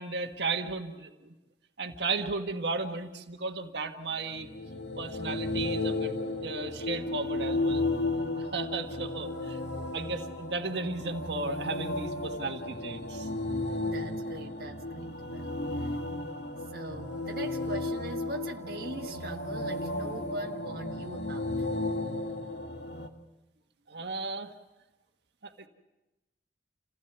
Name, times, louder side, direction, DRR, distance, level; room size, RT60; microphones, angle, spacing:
voice 1, 0.0-1.3 1.8-4.5 5.0-6.1 6.4-7.8 8.4-13.3 23.9-24.5 25.4-25.7, right 3 dB, 75° right, 5 dB, 1.5 m, -35 dB
sound 1, 4.3-23.1, left 2 dB, 80° left, 1.8 m, -34 dB
voice 2, 13.8-15.9 16.7-21.7, right 1 dB, 55° right, 1 dB, 1.5 m, -41 dB
28.5 x 16.5 x 8.1 m, 1.0 s
head